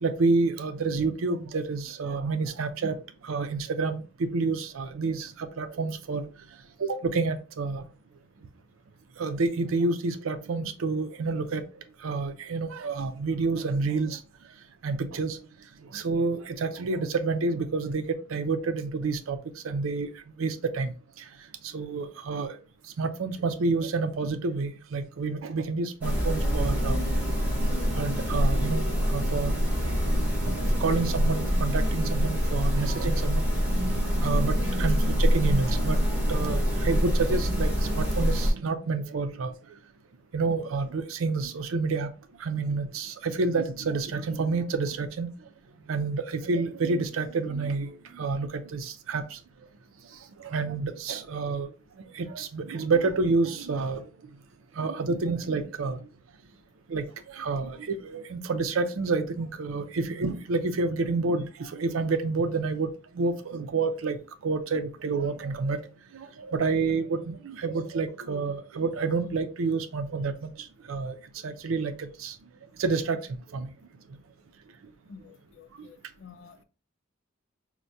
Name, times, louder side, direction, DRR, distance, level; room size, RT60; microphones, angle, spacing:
voice 1, 0.0-3.0 3.2-6.3 6.8-7.9 9.2-11.6 12.0-14.2 14.8-15.4 15.9-19.4 19.6-20.1 20.4-21.3 21.6-22.6 23.0-27.0 28.0-29.5 30.5-33.4 33.7-36.0 36.3-39.5 40.3-42.1 42.4-45.3 45.9-49.4 50.4-51.7 52.1-54.1 54.8-56.0 56.9-65.8 66.1-71.2 71.4-72.4 72.8-73.2 73.5-73.7, right 4 dB, 90° right, 0.5 m, -29 dB
sound 1, 26.0-38.5, equal, 10° right, 1.1 m, -25 dB
voice 2, 75.1-76.6, left 5 dB, 60° left, 0.4 m, -50 dB
4.5 x 2.1 x 2.6 m
head